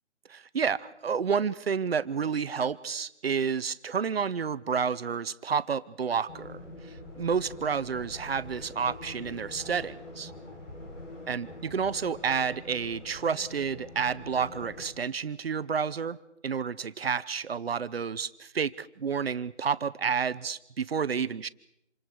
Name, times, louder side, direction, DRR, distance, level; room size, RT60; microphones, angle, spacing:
voice 1, 0.3-10.3 11.3-16.2 16.4-21.5, right 6 dB, 55° right, 16 dB, 1.0 m, -30 dB
sound 1, 6.3-14.9, left 1 dB, 80° left, 7.5 m, -45 dB
27.5 x 27.0 x 4.7 m, 0.77 s
figure-of-eight pair, 160°, 36 cm